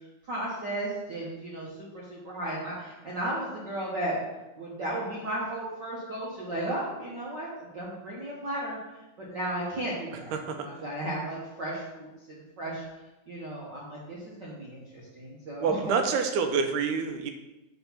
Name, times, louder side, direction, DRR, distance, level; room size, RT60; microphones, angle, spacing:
voice 1, 0.3-4.2 4.5-8.8 9.2-12.8 13.3-16.0, right 1 dB, 55° right, -6 dB, 1.2 m, -35 dB
voice 2, 10.3-10.7 15.6-17.3, right 5 dB, 80° right, 6 dB, 2.1 m, -27 dB
8.1 x 3.6 x 5.7 m, 1.0 s
omnidirectional pair, 3.7 m